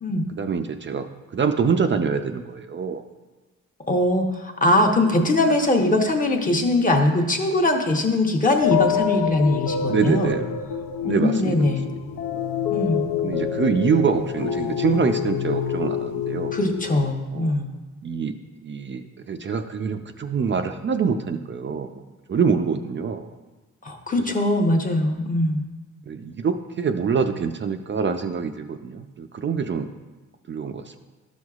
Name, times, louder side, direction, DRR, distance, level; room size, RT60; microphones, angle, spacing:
voice 1, 0.4-3.0 9.9-10.5 11.0-11.7 13.2-16.5 17.3-17.6 18.0-18.4 18.6-23.3 26.1-29.9 30.5-31.0, right 6 dB, 35° right, 7 dB, 0.4 m, -25 dB
voice 2, 3.9-10.3 11.0-11.9 12.7-13.0 16.5-17.7 23.8-25.6, left 1 dB, 25° left, 2 dB, 0.8 m, -21 dB
sound 1, 8.6-17.0, left 8 dB, 85° left, 0.6 m, -27 dB
12.5 x 6.2 x 2.4 m, 1.2 s
cardioid pair, 130°, 34 cm